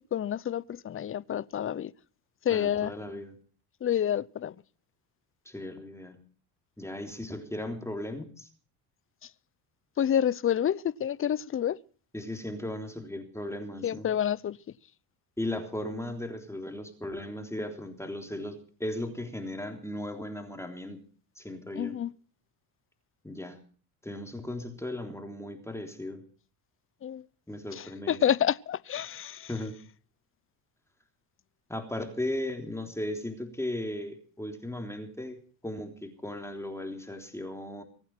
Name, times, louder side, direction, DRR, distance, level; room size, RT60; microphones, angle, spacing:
voice 1, 0.1-1.9 2.4-2.9 3.8-4.5 10.0-11.8 13.8-14.6 21.8-22.1 27.0-27.2 27.8-29.5, left 9 dB, 30° left, 0.7 m, -28 dB
voice 2, 2.5-3.4 5.5-6.2 6.8-8.5 12.1-14.1 15.4-21.0 21.4-22.0 23.2-23.6 24.0-26.2 27.5-28.2 29.5-29.8 31.7-37.8, left 1 dB, 5° left, 3.5 m, -36 dB
24.0 x 9.2 x 6.0 m
supercardioid pair, 85°, 46 cm